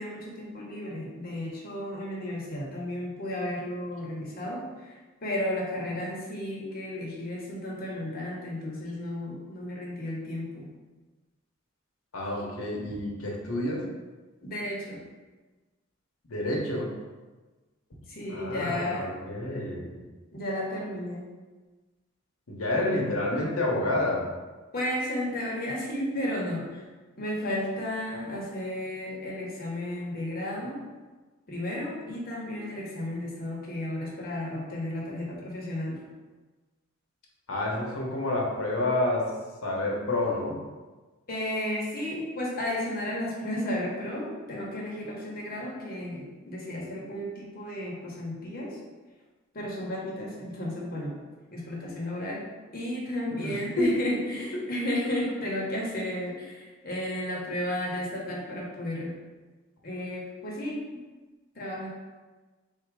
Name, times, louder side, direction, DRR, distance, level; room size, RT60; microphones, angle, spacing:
voice 1, 0.0-10.6 14.4-15.0 18.1-19.1 20.3-21.2 24.7-26.8 27.2-30.8 31.5-36.0 41.3-48.8 49.5-51.1 51.5-52.4 52.7-59.1 59.8-61.0 61.5-61.9, left 1 dB, 45° left, -3 dB, 1.1 m, -33 dB
voice 2, 12.1-13.9 16.3-16.9 18.3-20.0 22.5-24.2 37.5-39.3 39.6-40.6 53.4-53.9 54.6-54.7, left 1 dB, 80° left, -2 dB, 1.0 m, -29 dB
3.7 x 2.8 x 4.7 m, 1.3 s
head